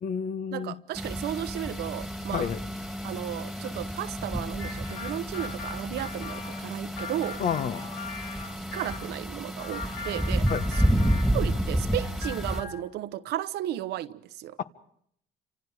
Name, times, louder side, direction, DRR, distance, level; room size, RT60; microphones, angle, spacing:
voice 1, 0.0-0.8 2.3-2.6 7.4-7.9 10.5-10.6 14.6-14.7, left 7 dB, 50° left, 1.4 m, -29 dB
voice 2, 0.5-2.5 3.0-7.4 8.7-10.8 11.3-14.6, right 13 dB, 75° right, 1.0 m, -34 dB
sound 1, 0.9-12.6, equal, ahead, 2.3 m, -30 dB
sound 2, 4.6-9.1 9.6-11.7 12.0-12.9, left 4 dB, 85° left, 2.9 m, -41 dB
29.5 x 26.0 x 5.0 m
cardioid pair, 110°, 17 cm